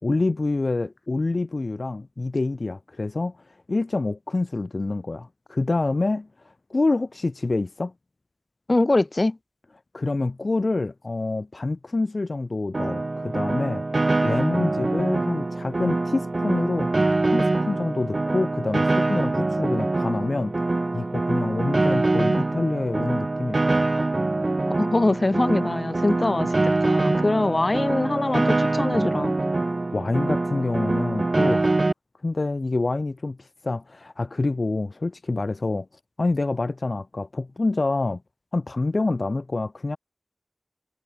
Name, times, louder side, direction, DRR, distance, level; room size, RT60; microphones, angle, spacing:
voice 1, 0.0-6.3 6.7-7.9 9.9-13.8 14.2-16.9 17.3-20.6 20.9-23.9 29.9-31.8 32.2-38.2 38.5-40.0, left 3 dB, 90° left, 2.6 m, -27 dB
voice 2, 8.7-9.4 24.7-29.3, left 2 dB, 65° left, 1.1 m, -23 dB
Piano, 12.7-31.9, right 2 dB, 75° right, 6.0 m, -24 dB
wide cardioid pair, 45°, 0 cm